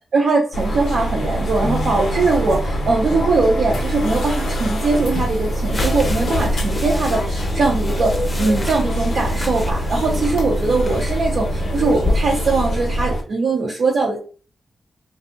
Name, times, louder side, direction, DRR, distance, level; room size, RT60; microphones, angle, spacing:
voice 1, 0.1-14.2, right 3 dB, 75° right, -5 dB, 0.6 m, -21 dB
sound 1, 0.5-13.2, equal, 80° left, 0.5 m, -23 dB
sound 2, 5.7-12.2, left 1 dB, 30° left, 0.5 m, -29 dB
2.6 x 2.0 x 2.4 m, 0.38 s
cardioid pair, 50°, 0 cm